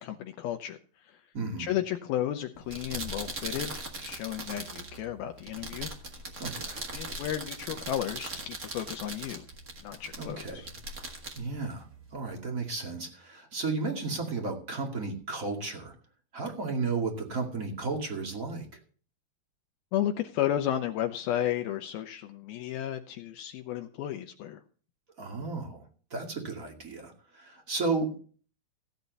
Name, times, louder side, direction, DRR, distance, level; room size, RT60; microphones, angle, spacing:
voice 1, 0.0-1.2 1.6-5.9 6.9-9.4 9.8-10.7 19.9-24.6, left 11 dB, 75° left, 5 dB, 2.4 m, -33 dB
voice 2, 1.3-1.7 6.4-6.8 10.2-10.6 11.3-11.9 12.1-15.9 16.3-18.7 25.2-25.8 26.1-28.2, right 4 dB, 30° right, 2 dB, 1.9 m, -33 dB
sound 1, 2.5-12.4, right 2 dB, 50° right, 1.0 m, -40 dB
16.0 x 8.8 x 4.1 m, 0.42 s
omnidirectional pair, 4.6 m